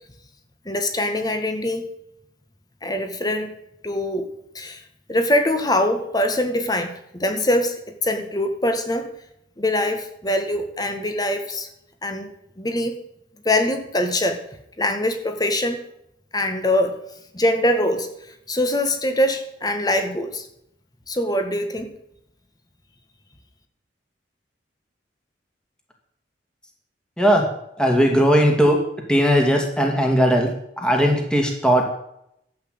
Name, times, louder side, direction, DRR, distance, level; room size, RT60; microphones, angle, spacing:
voice 1, 0.6-1.9 2.8-3.5 3.8-4.3 4.5-4.8 5.1-9.1 9.6-11.7 12.0-12.3 12.6-12.9 13.4-14.4 14.8-15.8 16.3-17.0 17.3-18.1 18.5-20.5 21.1-21.9, left 1 dB, 20° left, 7 dB, 1.7 m, -23 dB
voice 2, 27.2-27.5 27.8-28.8 29.1-32.0, equal, 5° left, 1 dB, 2.3 m, -18 dB
13.0 x 8.6 x 7.9 m, 0.77 s
head